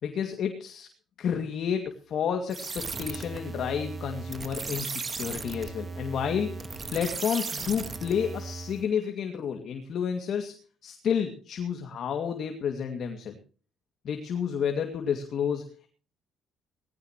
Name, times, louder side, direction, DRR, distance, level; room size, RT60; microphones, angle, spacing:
voice 1, 0.0-0.9 1.2-10.6 10.8-13.4 14.0-15.9, left 7 dB, 50° left, 5 dB, 2.3 m, -30 dB
sound 1, 2.5-8.8, right 4 dB, 25° right, 1.6 m, -36 dB
19.5 x 17.0 x 3.1 m, 0.38 s
cardioid pair, 155°, 0 cm